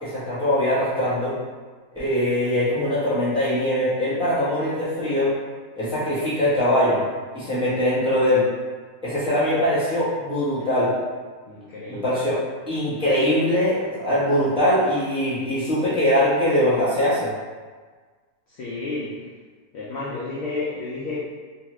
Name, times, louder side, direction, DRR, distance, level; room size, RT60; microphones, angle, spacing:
voice 1, 0.0-1.3 1.9-5.3 5.8-7.0 7.3-8.4 9.0-10.9 11.9-12.4 12.7-17.3, left 1 dB, 5° right, -11 dB, 0.7 m, -22 dB
voice 2, 11.5-12.1 18.5-19.3 19.7-21.3, left 3 dB, 70° left, -6 dB, 0.6 m, -31 dB
2.7 x 2.4 x 3.0 m, 1.5 s
omnidirectional pair, 1.6 m